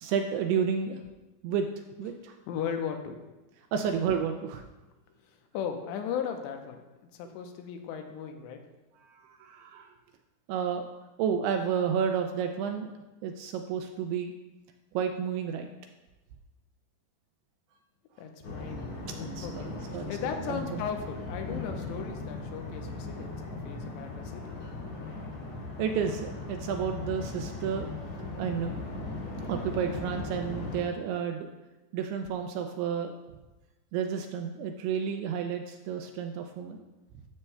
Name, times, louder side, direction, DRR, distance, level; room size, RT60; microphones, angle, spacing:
voice 1, 0.0-1.0 1.4-1.7 2.0-2.4 3.7-4.6 9.0-9.9 10.5-10.9 11.2-12.9 13.2-14.3 14.9-15.7 19.1-20.2 20.5-20.8 25.8-27.9 28.4-28.8 29.5-31.5 31.9-33.1 33.9-36.8, right 7 dB, 85° right, 5 dB, 2.4 m, -31 dB
voice 2, 2.5-3.2 5.2-6.8 7.1-8.6 18.2-18.9 19.2-24.6, left 7 dB, 90° left, 4 dB, 2.9 m, -37 dB
sound 1, 18.4-30.8, left 2 dB, 50° left, 1.9 m, -38 dB
12.5 x 7.0 x 2.2 m, 1.1 s
omnidirectional pair, 5.0 m